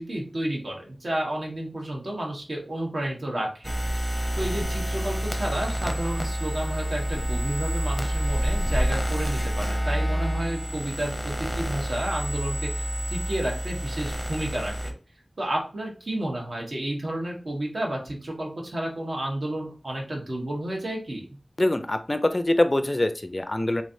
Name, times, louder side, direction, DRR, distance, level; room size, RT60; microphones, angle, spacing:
voice 1, 0.0-3.7 4.4-14.9 15.4-21.3, right 1 dB, 70° right, -1 dB, 1.2 m, -31 dB
sound 1, 3.6-14.9, equal, 10° right, 0.7 m, -28 dB
voice 2, 21.6-23.8, left 1 dB, 35° left, 9 dB, 0.4 m, -24 dB
3.9 x 3.1 x 2.6 m, 0.36 s
wide cardioid pair, 60°, 0 cm